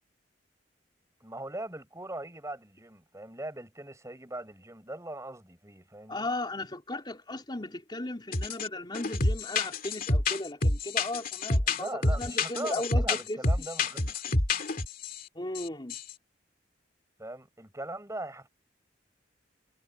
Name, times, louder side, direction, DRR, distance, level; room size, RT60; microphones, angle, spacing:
voice 1, 1.2-6.3 11.7-14.4 17.2-18.5, right 1 dB, 15° right, 6.5 m, -40 dB
voice 2, 6.1-13.4 15.3-15.9, left 2 dB, 25° left, 3.4 m, -36 dB
sound 1, 8.3-8.7 8.9-15.2 15.6-15.7 15.9-16.1, left 2 dB, 50° left, 2.6 m, -28 dB
head